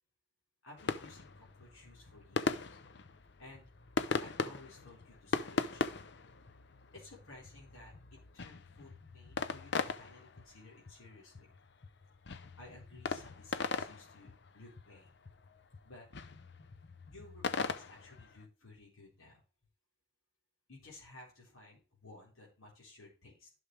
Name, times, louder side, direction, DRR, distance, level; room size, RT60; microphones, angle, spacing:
voice 1, 0.6-2.6 3.4-3.7 4.2-5.8 6.9-11.5 12.6-15.2 15.8-16.1 17.0-19.4 20.7-23.5, left 2 dB, 80° left, -4 dB, 4.3 m, -56 dB
sound 1, 0.8-18.5, left 4 dB, 55° left, 0.6 m, -40 dB
12.0 x 6.5 x 3.3 m, 0.33 s
head